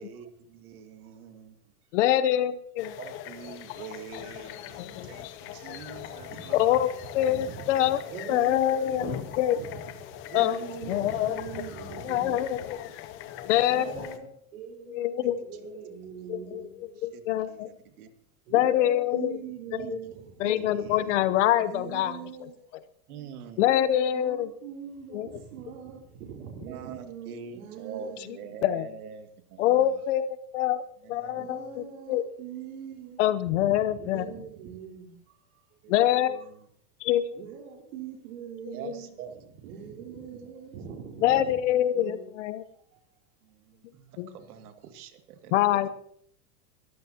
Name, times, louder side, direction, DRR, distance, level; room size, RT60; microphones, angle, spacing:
voice 1, 0.0-1.6 3.0-6.6 7.8-7.9 10.4-11.1 12.7-12.8 13.2-13.6 13.8-14.3 17.0-18.1 19.8-19.9 20.4-21.2 23.1-23.7 26.7-30.0 31.0-31.4 35.8-36.7 38.7-39.4 43.4-45.7, right 7 dB, 80° right, 6 dB, 2.3 m, -45 dB
voice 2, 1.9-2.9 4.8-5.1 6.5-8.0 8.3-9.0 9.4-9.6 10.3-10.6 10.9-11.4 12.0-12.6 13.4-13.8 14.9-15.5 16.3-16.6 17.0-17.7 18.5-19.3 20.4-22.2 23.6-24.5 25.1-25.3 28.6-28.9 29.6-30.8 31.1-32.2 33.2-34.3 35.9-36.4 37.0-37.4 38.8-38.9 41.2-42.6 44.2-44.3 45.5-45.9, left 12 dB, 55° left, 13 dB, 0.9 m, -25 dB
sound 1, 2.8-14.2, left 11 dB, 25° left, 0.8 m, -41 dB
voice 3, 5.8-6.6 7.1-7.6 7.9-12.4 13.7-16.8 17.4-17.5 18.5-20.4 20.8-21.2 21.6-22.6 24.1-28.5 31.3-35.7 36.3-36.5 37.3-39.1 39.6-41.6 41.9-42.3 42.7-43.0 44.4-44.5, right 7 dB, 65° right, -2 dB, 3.3 m, -42 dB
23.0 x 14.0 x 2.9 m, 0.65 s
supercardioid pair, 160°, 44 cm